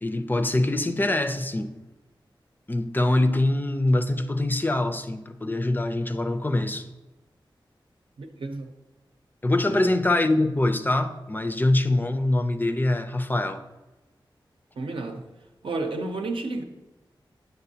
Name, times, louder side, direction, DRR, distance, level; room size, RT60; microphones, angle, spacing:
voice 1, 0.0-1.8 2.7-6.9 9.4-13.6, left 2 dB, 20° left, 0.4 m, -24 dB
voice 2, 8.2-8.7 9.6-9.9 14.8-15.2 15.6-16.6, right 3 dB, 80° right, 0.7 m, -31 dB
8.0 x 6.2 x 2.7 m
wide cardioid pair, 95°, 9 cm